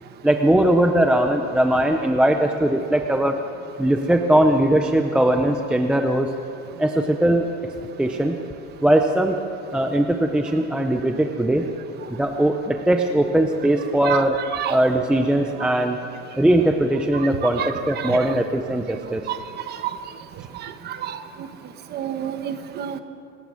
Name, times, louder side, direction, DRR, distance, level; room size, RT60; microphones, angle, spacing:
voice 1, 0.2-3.4 3.8-6.3 6.8-7.5 8.0-8.4 8.8-9.4 9.7-11.7 12.1-14.4 14.7-16.0 16.4-19.2, right 1 dB, 5° right, 4 dB, 0.4 m, -20 dB
voice 2, 14.0-14.8 17.1-17.3 17.6-18.2 19.3-19.4 19.7-19.9 20.5-21.2 21.9-23.0, right 10 dB, 30° right, 9 dB, 1.1 m, -29 dB
26.0 x 19.0 x 6.3 m, 2.7 s
cardioid pair, 175°, 35 cm